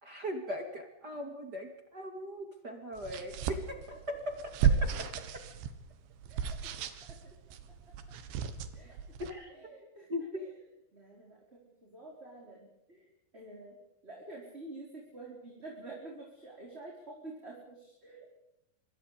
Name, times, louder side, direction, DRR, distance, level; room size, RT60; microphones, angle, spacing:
voice 1, 0.0-4.2 4.4-4.5 9.2-9.5 10.1-10.2, left 1 dB, 35° right, 4 dB, 1.8 m, -39 dB
sound 1, 3.0-9.3, right 7 dB, 75° right, 3.8 m, -34 dB
voice 2, 7.0-7.3 8.7-9.0 9.5-10.6 10.9-13.1 13.3-13.8 14.0-18.3, right 2 dB, 15° right, -2 dB, 4.5 m, -49 dB
25.5 x 24.5 x 5.1 m, 0.85 s
omnidirectional pair, 5.5 m